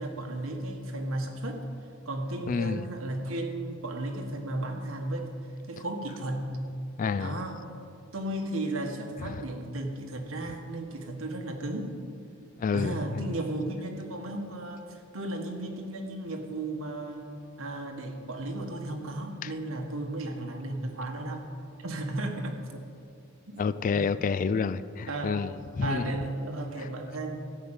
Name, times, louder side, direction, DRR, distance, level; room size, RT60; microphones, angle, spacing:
voice 1, 0.0-1.6 2.0-5.3 5.7-6.6 7.2-7.6 8.1-11.9 12.7-17.3 17.6-21.5 21.8-22.8 23.5-23.6 23.9-24.0 25.1-25.4 25.8-27.4, right 1 dB, 75° right, 3 dB, 1.5 m, -34 dB
voice 2, 2.5-2.8 7.0-7.4 9.3-9.4 12.6-13.3 19.4-19.5 23.6-25.5 25.8-26.0, left 5 dB, 40° left, 15 dB, 0.3 m, -29 dB
14.5 x 5.0 x 8.9 m, 2.4 s
head